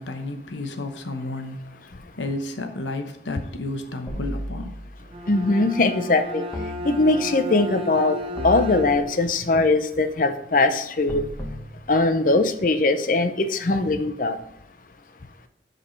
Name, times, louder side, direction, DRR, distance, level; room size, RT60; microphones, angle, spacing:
voice 1, 0.0-1.9 2.2-4.8, left 2 dB, 90° left, 6 dB, 1.0 m, -32 dB
sound 1, 4.1-5.1 6.5-7.5 8.4-9.4 11.1-12.5, left 1 dB, 20° left, 1.3 m, -35 dB
Bowed string instrument, 5.0-9.3, left 1 dB, 30° right, 0.7 m, -33 dB
voice 2, 5.3-6.4 6.8-8.2 8.4-11.2 11.9-14.4, left 2 dB, 45° left, 9 dB, 0.6 m, -21 dB
11.5 x 5.3 x 3.2 m, 0.75 s
head